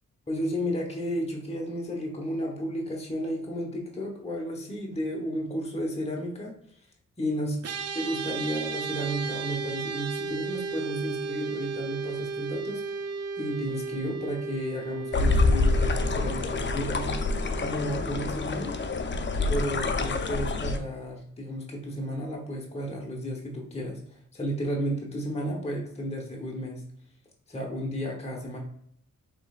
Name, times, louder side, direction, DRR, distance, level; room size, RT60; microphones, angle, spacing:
voice 1, 0.3-6.5 7.2-7.5 7.9-13.1 13.4-17.1 17.6-18.8 19.5-24.0 24.3-26.8 27.5-28.6, equal, 20° left, -1 dB, 1.1 m, -33 dB
sound 1, 7.6-19.1, right 4 dB, 55° right, 0.5 m, -35 dB
sound 2, 15.1-20.8, left 3 dB, 35° left, 0.5 m, -26 dB
6.9 x 3.1 x 2.4 m, 0.68 s
cardioid pair, 80°, 31 cm